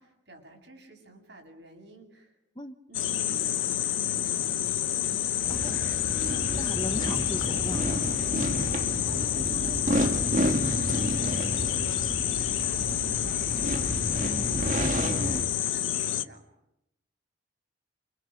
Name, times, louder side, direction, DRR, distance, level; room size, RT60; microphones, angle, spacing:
voice 1, 0.0-2.4 2.9-4.5 6.8-7.2 8.6-13.7 14.2-16.5, right 2 dB, 60° right, 2 dB, 7.4 m, -50 dB
sound 1, 2.9-16.3, left 11 dB, 80° left, 1.0 m, -29 dB
sound 2, 5.4-15.4, right 1 dB, 40° right, 1.8 m, -31 dB
voice 2, 5.5-5.8 6.5-8.0, left 1 dB, 20° left, 9 dB, 1.0 m, -37 dB
29.0 x 27.5 x 5.2 m, 0.84 s
head